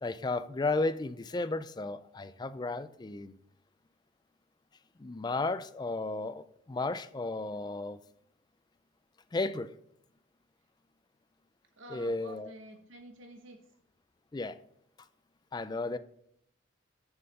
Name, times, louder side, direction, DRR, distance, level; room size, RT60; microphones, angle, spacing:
voice 1, 0.0-3.4 5.0-8.0 9.3-9.7 11.9-12.5 14.3-14.6 15.5-16.0, left 3 dB, 20° left, 0.3 m, -34 dB
voice 2, 11.8-13.6, right 1 dB, 70° right, 0.9 m, -49 dB
6.9 x 6.7 x 5.3 m
head